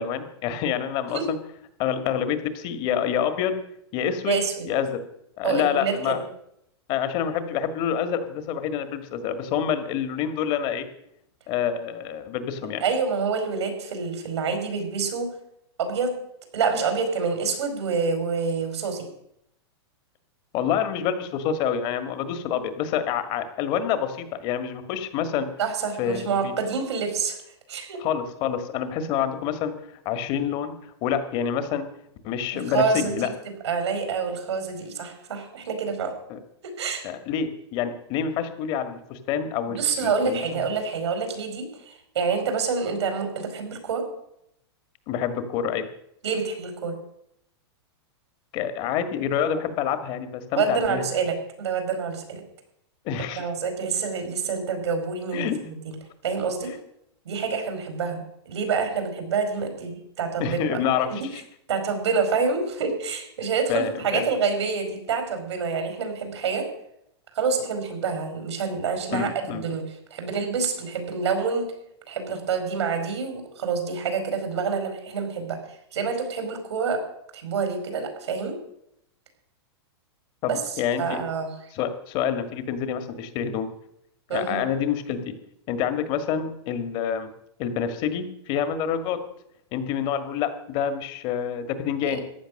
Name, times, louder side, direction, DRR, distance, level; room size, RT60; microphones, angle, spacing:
voice 1, 0.0-1.4 1.8-3.6 3.9-4.4 4.6-5.0 5.4-6.2 6.9-10.9 11.5-12.8 20.5-25.5 26.0-26.5 28.0-29.7 30.0-31.9 32.2-33.3 36.3-36.4 37.0-40.6 45.1-45.9 48.5-51.0 53.0-53.5 55.3-55.6 60.4-61.4 63.7-64.2 69.1-69.6 80.4-81.2 81.7-83.7 84.3-85.3 85.7-87.3 87.6-89.2 89.7-92.2, left 8 dB, 35° left, 11 dB, 1.7 m, -27 dB
voice 2, 4.3-4.7 5.4-6.2 12.8-15.3 15.8-16.1 16.5-19.1 25.6-27.4 27.7-28.0 32.5-33.3 33.6-36.1 36.6-37.0 39.7-44.0 46.2-46.9 50.5-52.4 53.3-55.9 56.2-56.7 57.2-60.8 61.0-61.2 61.7-66.7 67.3-69.8 70.1-71.7 72.1-75.6 75.9-77.0 77.3-78.6 80.5-81.5 84.3-84.6 92.0-92.2, right 5 dB, 85° right, 6 dB, 4.9 m, -27 dB
14.5 x 10.0 x 6.5 m, 0.75 s
supercardioid pair, 150°, 14 cm